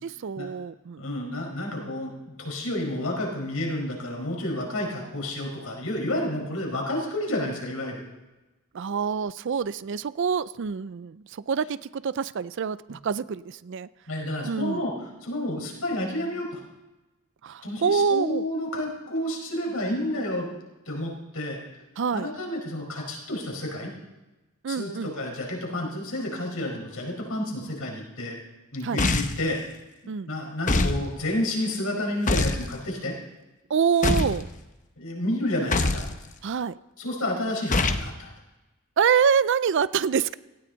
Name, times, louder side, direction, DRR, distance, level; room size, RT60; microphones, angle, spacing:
voice 1, 0.0-1.0 8.7-13.9 14.4-14.8 17.4-18.4 22.0-22.3 24.6-25.1 28.8-29.0 30.1-30.3 33.7-34.5 36.4-36.8 39.0-40.3, right 6 dB, 55° right, 17 dB, 0.4 m, -26 dB
voice 2, 1.0-8.0 14.1-14.9 15.2-16.6 17.6-20.5 20.9-21.6 22.1-23.9 24.7-28.4 28.7-29.6 30.2-33.1 35.0-36.1 37.0-38.3, left 1 dB, 70° left, 0 dB, 5.0 m, -30 dB
sound 1, 29.0-29.5 30.7-31.0 32.3-32.6 34.0-34.4 35.7-36.1 37.7-38.1, left 2 dB, 35° left, 0.9 m, -23 dB
18.0 x 16.5 x 4.0 m, 1.1 s
head